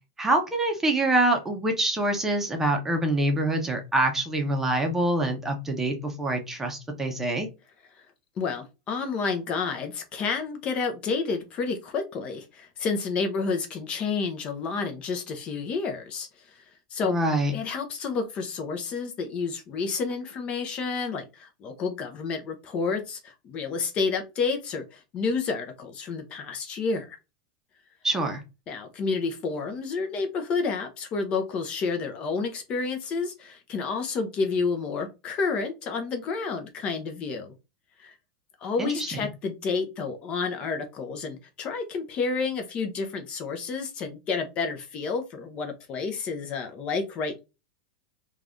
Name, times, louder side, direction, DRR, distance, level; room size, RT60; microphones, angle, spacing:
voice 1, 0.2-7.5 17.0-17.5 28.0-28.4 38.8-39.2, right 1 dB, 10° right, 3 dB, 0.7 m, -25 dB
voice 2, 8.4-16.3 16.5-16.6 16.9-17.1 17.5-27.2 28.7-37.5 38.0-38.1 38.6-47.4, left 4 dB, 35° left, 5 dB, 0.6 m, -30 dB
3.1 x 2.4 x 2.5 m, 0.26 s
supercardioid pair, 135°, 3 cm